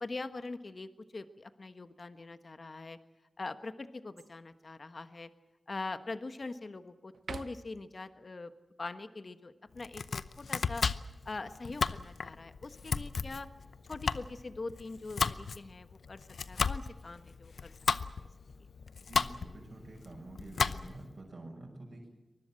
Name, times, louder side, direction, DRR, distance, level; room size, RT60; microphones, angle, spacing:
voice 1, 0.0-3.0 3.4-5.3 5.7-8.5 8.8-10.8 11.2-13.5 13.9-17.7 18.0-18.2, left 3 dB, 55° left, 11 dB, 1.3 m, -43 dB
sound 1, 4.2-4.6 5.2-5.3 5.8-6.6 7.1-7.9 11.4-12.8 14.1-14.7, right 5 dB, 90° right, 0.9 m, -50 dB
Domestic sounds home sounds, 9.8-21.1, left 5 dB, 85° left, 0.7 m, -35 dB
voice 2, 19.1-22.1, right 2 dB, 60° right, 0 dB, 6.8 m, -48 dB
24.0 x 20.5 x 7.7 m, 1.1 s
wide cardioid pair, 60°, 0 cm